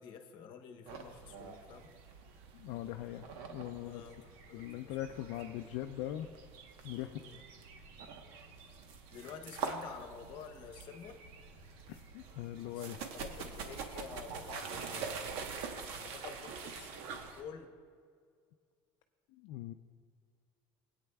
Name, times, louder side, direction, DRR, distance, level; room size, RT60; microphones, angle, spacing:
voice 1, 0.0-1.9 3.8-5.0 6.9-7.4 9.1-11.2 12.7-15.5 16.0-17.7, left 7 dB, 50° left, 5 dB, 1.0 m, -50 dB
sound 1, 0.9-17.4, right 5 dB, 70° right, 1.0 m, -45 dB
voice 2, 2.5-4.0 4.5-6.3 6.8-7.1 11.9-13.0 19.4-19.7, left 13 dB, 75° left, 6 dB, 0.4 m, -41 dB
20.0 x 8.8 x 2.3 m, 2.1 s
cardioid pair, 155°, 10 cm